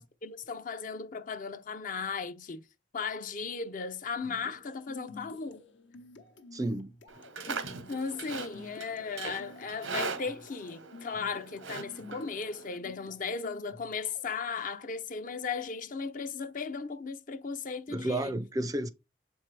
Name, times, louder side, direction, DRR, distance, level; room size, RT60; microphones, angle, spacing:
voice 1, 0.0-2.6 2.9-5.6 7.4-7.6 7.9-18.3, left 5 dB, 40° left, 0.5 m, -36 dB
sound 1, 4.1-14.4, left 3 dB, 75° left, 0.9 m, -51 dB
voice 2, 6.5-6.9 17.9-18.9, right 1 dB, 20° right, 0.4 m, -31 dB
Livestock farm animals working animals, 7.1-12.8, right 5 dB, 85° right, 1.0 m, -40 dB
7.5 x 4.5 x 3.3 m
head